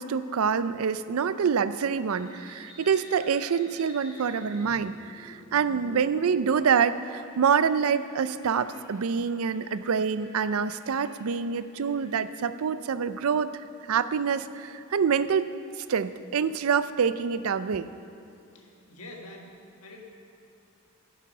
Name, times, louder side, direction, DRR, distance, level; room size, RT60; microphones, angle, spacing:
voice 1, 0.0-13.5 13.9-15.5 15.9-17.9, right 6 dB, 75° right, 14 dB, 0.4 m, -26 dB
sound 1, 2.1-12.3, equal, 25° left, 3.2 m, -51 dB
voice 2, 18.5-20.1, left 2 dB, 85° left, 1 dB, 1.6 m, -46 dB
16.5 x 6.7 x 5.5 m, 2.7 s
head